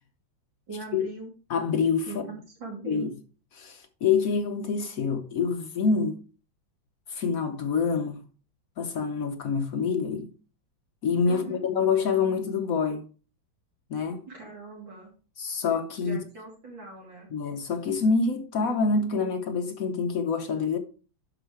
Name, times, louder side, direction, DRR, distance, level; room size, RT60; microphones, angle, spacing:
voice 1, 0.7-1.3 2.1-2.3 2.6-3.1 11.3-11.6 14.3-15.1 16.0-17.3, right 3 dB, 70° right, 3.6 m, -40 dB
voice 2, 1.5-2.1 2.8-3.1 3.5-6.2 7.1-8.2 8.8-10.3 11.0-13.0 13.9-14.2 15.4-16.2 17.3-20.8, left 5 dB, 60° left, 0.9 m, -26 dB
11.0 x 4.9 x 3.3 m
omnidirectional pair, 2.1 m